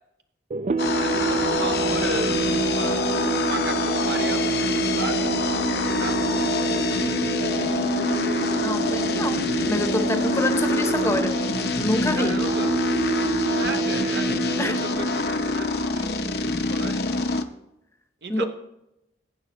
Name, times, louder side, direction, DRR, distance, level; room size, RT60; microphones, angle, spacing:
sound 1, 0.5-16.8, right 3 dB, 40° right, 0.4 m, -28 dB
sound 2, 0.8-17.4, left 3 dB, 60° left, 0.9 m, -26 dB
voice 1, 0.9-5.3 6.0-6.5 12.1-12.7 13.4-17.4 18.2-18.5, right 2 dB, 65° right, 1.0 m, -35 dB
voice 2, 8.6-11.4 11.8-12.3 14.6-14.8 18.3-18.4, left 1 dB, 15° left, 0.9 m, -27 dB
22.0 x 9.6 x 3.1 m
head